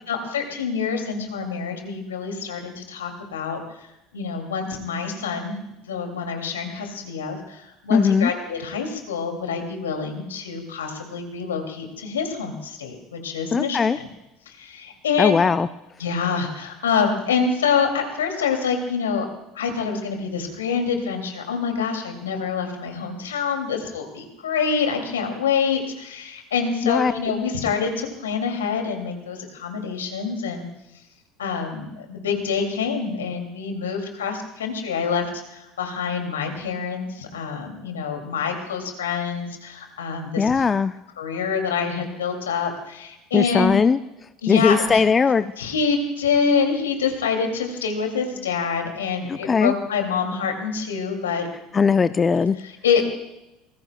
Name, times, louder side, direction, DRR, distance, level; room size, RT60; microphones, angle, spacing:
voice 1, 0.1-3.6 4.1-5.6 5.9-14.1 14.5-15.4 16.0-19.3 19.5-30.7 31.4-35.2 35.5-40.6 41.2-43.8 44.4-45.0 45.6-51.5 52.6-53.0, left 6 dB, 80° left, 4 dB, 2.4 m, -26 dB
voice 2, 7.9-8.3 13.5-14.0 15.2-15.7 26.8-27.1 40.4-40.9 43.3-44.0 44.5-45.5 49.3-49.7 51.7-52.6, left 5 dB, 30° left, 12 dB, 0.5 m, -19 dB
25.0 x 19.5 x 2.2 m, 0.92 s
figure-of-eight pair, 65°, 0 cm